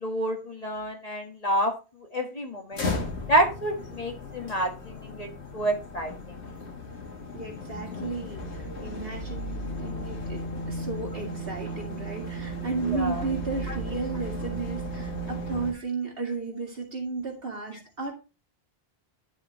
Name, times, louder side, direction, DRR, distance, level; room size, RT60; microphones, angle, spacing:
voice 1, 0.0-1.7 2.1-2.8 3.3-5.3 5.5-6.1 12.9-13.2, right 1 dB, 35° left, 3 dB, 1.4 m, -28 dB
sound 1, 2.7-15.7, equal, 80° left, 1.7 m, -35 dB
voice 2, 7.3-18.1, right 4 dB, 60° right, 0 dB, 2.5 m, -34 dB
10.5 x 6.1 x 2.9 m, 0.30 s
omnidirectional pair, 1.1 m